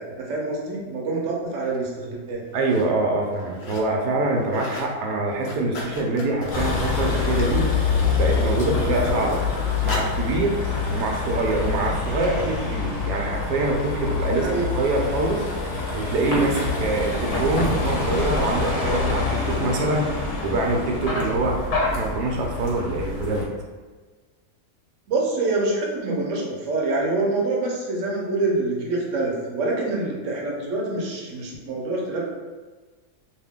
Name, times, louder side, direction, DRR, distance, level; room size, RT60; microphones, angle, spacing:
voice 1, 0.0-2.4 14.3-14.7 25.1-32.2, right 2 dB, 55° right, -3 dB, 1.0 m, -26 dB
sound 1, 1.6-1.8 2.4-2.9 3.2-3.9 4.2-4.9 5.2-10.2 10.9-11.0, left 2 dB, 80° left, 0.5 m, -38 dB
voice 2, 2.5-7.7 8.2-9.4 9.8-10.6 10.9-15.5 15.9-21.7 21.9-23.5, right 2 dB, 85° right, 0 dB, 1.2 m, -24 dB
Vehicle, 6.5-23.5, left 4 dB, 60° left, 1.0 m, -26 dB
2.9 x 2.6 x 3.5 m, 1.3 s
omnidirectional pair, 1.7 m